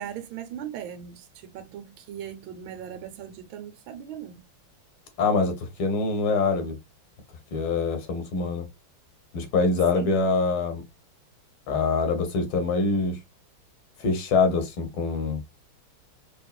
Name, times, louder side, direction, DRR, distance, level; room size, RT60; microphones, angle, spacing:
voice 1, 0.0-4.4 9.9-10.2, right 9 dB, 75° right, 1.5 m, -39 dB
voice 2, 5.2-6.8 7.5-8.6 9.3-10.8 11.7-13.2 14.0-15.4, left 4 dB, 80° left, 2.1 m, -24 dB
4.6 x 3.3 x 2.3 m
omnidirectional pair, 2.3 m